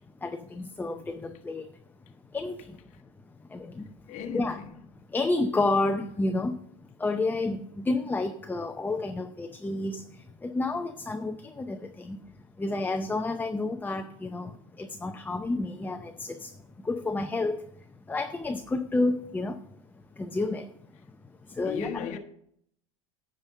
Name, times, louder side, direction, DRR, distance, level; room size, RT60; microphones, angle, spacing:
voice 1, 0.2-1.7 2.3-2.8 3.5-3.9 4.3-4.6 5.1-6.6 7.0-10.0 10.4-12.2 12.6-16.5 16.8-17.6 18.1-19.6 20.2-20.7 21.6-21.9, left 2 dB, 10° left, 0.6 m, -30 dB
voice 2, 4.1-4.8 21.6-22.2, left 7 dB, 45° left, 1.1 m, -35 dB
9.6 x 5.2 x 7.3 m
hypercardioid pair, 95°, 17 cm